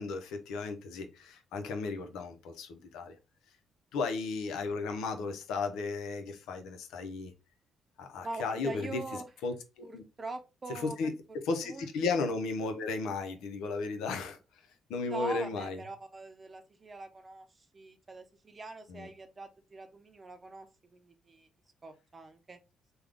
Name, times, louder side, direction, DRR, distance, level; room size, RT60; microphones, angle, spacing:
voice 1, 0.0-3.1 3.9-7.3 8.0-10.0 10.7-14.4 14.9-15.8 18.9-19.1, left 4 dB, 90° left, 0.7 m, -35 dB
voice 2, 8.2-9.2 9.8-11.1 11.6-11.9 15.0-21.5 21.8-22.6, right 2 dB, 30° right, 0.6 m, -43 dB
3.5 x 2.3 x 3.5 m
cardioid pair, 90°, 0 cm